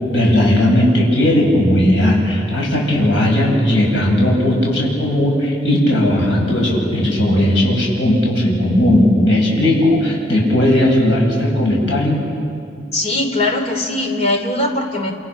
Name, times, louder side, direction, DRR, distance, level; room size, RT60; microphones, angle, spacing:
voice 1, 0.1-12.2, left 1 dB, 75° left, -2 dB, 7.6 m, -16 dB
voice 2, 12.9-15.1, left 2 dB, 35° left, 3 dB, 3.1 m, -20 dB
29.0 x 28.0 x 6.3 m, 2.4 s
head